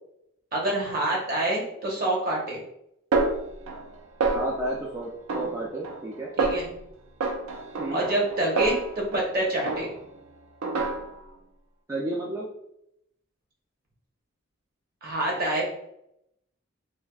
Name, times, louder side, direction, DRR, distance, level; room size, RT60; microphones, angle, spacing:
voice 1, 0.5-2.6 6.4-6.7 7.9-9.9 15.0-15.6, right 1 dB, 45° right, -2 dB, 0.9 m, -26 dB
Snare drum, 3.1-3.9 4.2-4.8 5.3-6.1 6.4-6.8 7.2-9.3 9.7-10.2 10.6-11.3, right 3 dB, 80° right, 0.4 m, -28 dB
voice 2, 4.3-6.3 7.8-8.1 11.9-12.5, right 1 dB, 15° right, -5 dB, 0.3 m, -32 dB
3.2 x 2.6 x 2.3 m, 0.77 s
head